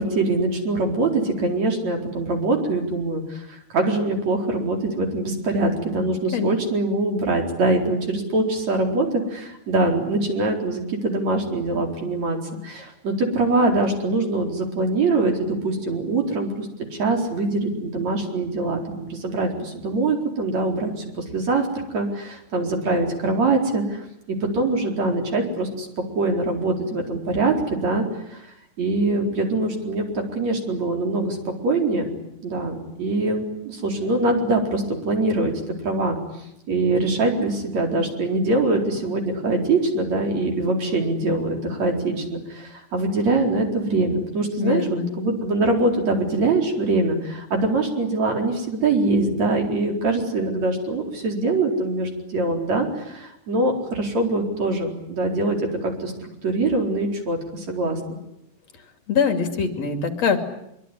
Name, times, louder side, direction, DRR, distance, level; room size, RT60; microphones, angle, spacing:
voice 1, 0.0-3.5 3.7-25.9 26.2-28.0 28.3-28.4 28.8-32.1 32.4-36.2 36.7-58.2, right 2 dB, 65° right, 2 dB, 5.6 m, -23 dB
voice 2, 44.6-45.1 59.1-60.4, left 6 dB, 60° left, 6 dB, 3.8 m, -23 dB
24.5 x 24.0 x 9.9 m, 0.82 s
omnidirectional pair, 3.3 m